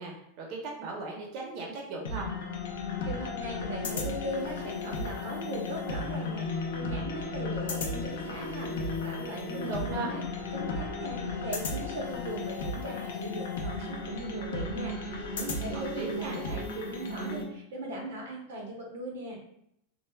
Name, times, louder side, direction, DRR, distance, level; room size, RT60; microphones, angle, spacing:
voice 1, 0.0-2.3 9.5-10.1 15.7-16.4, right 3 dB, 50° right, -1 dB, 0.7 m, -37 dB
sound 1, 2.0-17.4, left 3 dB, 80° left, 0.5 m, -35 dB
voice 2, 3.1-10.2 10.5-19.4, right 1 dB, 85° right, 0 dB, 0.7 m, -39 dB
Wind instrument woodwind instrument, 7.6-13.4, right 2 dB, 20° left, 0.8 m, -53 dB
3.1 x 2.1 x 2.2 m, 0.73 s
supercardioid pair, 135°, 0 cm